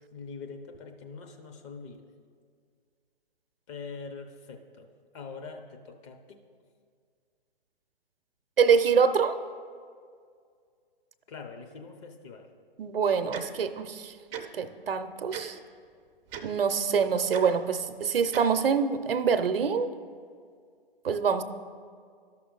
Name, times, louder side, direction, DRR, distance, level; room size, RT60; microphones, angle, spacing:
voice 1, 0.1-2.1 3.7-4.9 5.1-6.4 11.3-12.5, left 4 dB, 30° left, 4 dB, 0.8 m, -43 dB
voice 2, 8.6-9.4 12.8-14.1 14.5-15.6 16.4-19.9 21.0-21.4, right 6 dB, 75° right, 10 dB, 0.7 m, -25 dB
Tick-tock, 13.3-13.4 14.3-14.4 15.3-15.4 16.3-16.4 17.3-17.4 18.3-18.4, right 9 dB, 20° right, 0.5 m, -37 dB
12.5 x 5.9 x 3.9 m, 2.1 s
figure-of-eight pair, 125°, 29 cm